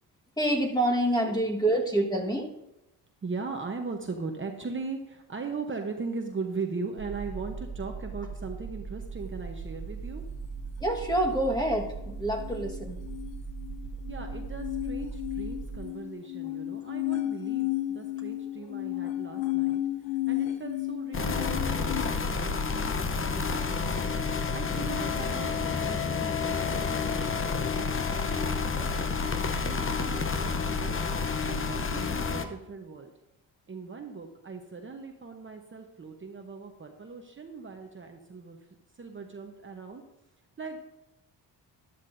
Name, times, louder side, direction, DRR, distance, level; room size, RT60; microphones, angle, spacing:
voice 1, 0.4-2.5 10.8-13.0, right 1 dB, 10° left, 1 dB, 1.5 m, -27 dB
voice 2, 3.2-10.2 14.1-24.0 24.5-29.1 29.5-31.0 31.4-33.1 33.7-38.6 39.0-40.0 40.6-40.8, right 4 dB, 30° right, 3 dB, 0.9 m, -39 dB
sound 1, 7.0-15.8, right 4 dB, 85° right, 1.1 m, -39 dB
sound 2, 12.4-22.0, left 16 dB, 85° left, 0.8 m, -33 dB
sound 3, 21.1-32.5, left 5 dB, 30° left, 0.8 m, -29 dB
13.5 x 11.0 x 2.6 m, 0.90 s
cardioid pair, 105°, 42 cm